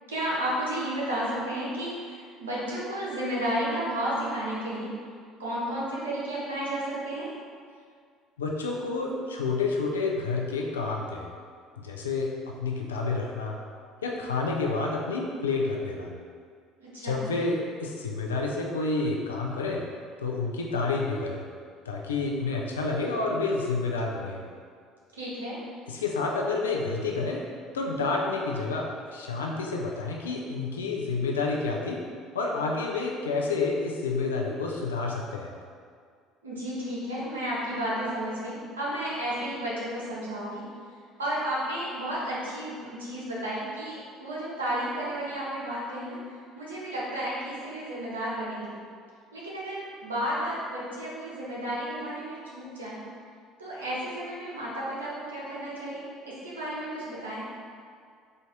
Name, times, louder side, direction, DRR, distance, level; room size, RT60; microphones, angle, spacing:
voice 1, 0.1-4.9 5.4-7.3 16.8-17.2 25.1-25.6 36.4-40.6 41.2-48.7 49.3-53.0 53.6-57.4, right 1 dB, 85° right, -7 dB, 0.9 m, -32 dB
voice 2, 8.4-11.3 11.8-13.6 14.0-16.1 17.0-19.8 20.2-21.4 21.9-24.4 25.9-27.4 27.7-32.0 32.3-35.5, left 3 dB, 85° left, -1 dB, 0.5 m, -29 dB
4.4 x 2.7 x 3.5 m, 2.1 s
hypercardioid pair, 60°, 0 cm